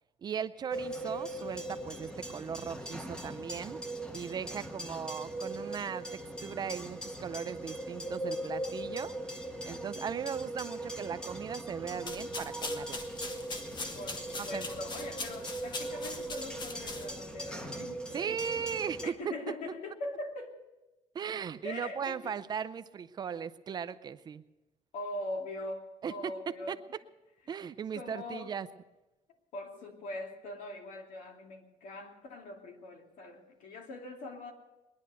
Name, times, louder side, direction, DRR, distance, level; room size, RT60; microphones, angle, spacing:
voice 1, 0.2-3.8 4.1-9.1 9.7-13.1 14.4-14.7 18.1-19.3 21.1-24.4 26.0-26.3 26.7-26.8 27.5-28.7, right 7 dB, 35° right, 13 dB, 0.5 m, -38 dB
sound 1, 0.7-19.1, right 1 dB, 5° left, 0.9 m, -40 dB
sound 2, 11.9-17.3, left 3 dB, 35° left, 1.3 m, -42 dB
voice 2, 13.9-18.4 19.0-20.6 21.6-22.3 24.9-26.8 27.9-28.5 29.5-34.5, left 2 dB, 85° left, 2 dB, 2.6 m, -42 dB
21.0 x 10.5 x 6.5 m, 1.0 s
cardioid pair, 170°, 13 cm